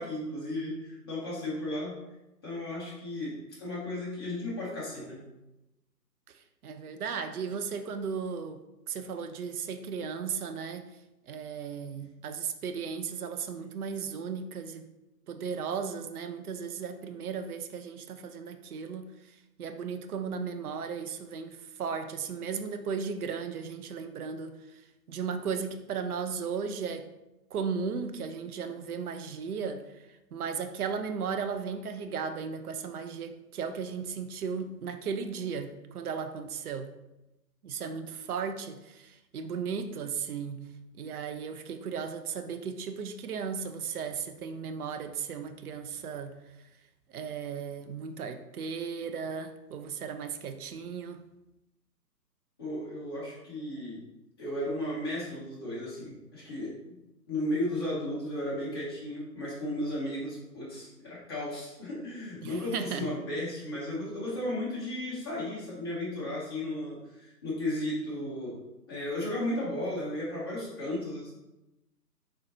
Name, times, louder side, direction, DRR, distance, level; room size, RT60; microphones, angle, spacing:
voice 1, 0.0-1.9 2.4-5.2 52.6-54.0 54.4-56.8 57.3-68.6 68.9-71.3, left 1 dB, 15° left, -8 dB, 0.7 m, -34 dB
voice 2, 6.6-10.9 11.3-14.8 15.3-19.1 19.6-24.6 25.1-27.1 27.5-30.0 30.3-36.9 37.6-40.7 41.0-46.4 47.1-51.2 62.4-63.1, right 6 dB, 65° right, 8 dB, 0.6 m, -36 dB
4.3 x 3.8 x 2.6 m, 0.95 s
figure-of-eight pair, 145°, 49 cm